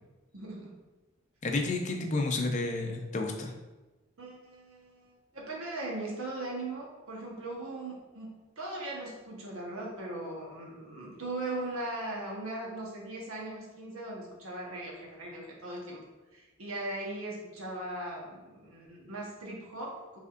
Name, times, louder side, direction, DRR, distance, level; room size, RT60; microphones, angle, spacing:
voice 1, 0.3-0.7 4.2-16.0 16.3-20.2, right 2 dB, 80° right, -2 dB, 1.1 m, -39 dB
voice 2, 1.4-3.5, left 2 dB, 35° left, 2 dB, 0.5 m, -31 dB
5.2 x 3.5 x 2.5 m, 1.1 s
head